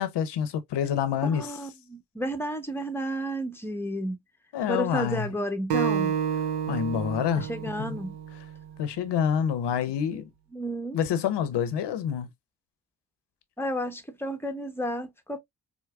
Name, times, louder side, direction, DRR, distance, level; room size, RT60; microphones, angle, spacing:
voice 1, 0.0-1.5 4.5-5.3 6.7-7.5 7.8-8.0 8.8-10.3 10.9-12.3, left 8 dB, 75° left, 0.8 m, -27 dB
voice 2, 1.2-4.2 4.7-6.2 7.3-8.2 10.5-11.0 13.6-15.4, equal, 5° left, 0.9 m, -32 dB
Acoustic guitar, 5.7-9.0, right 8 dB, 75° right, 0.8 m, -30 dB
4.6 x 2.1 x 2.3 m
supercardioid pair, 55°, 42 cm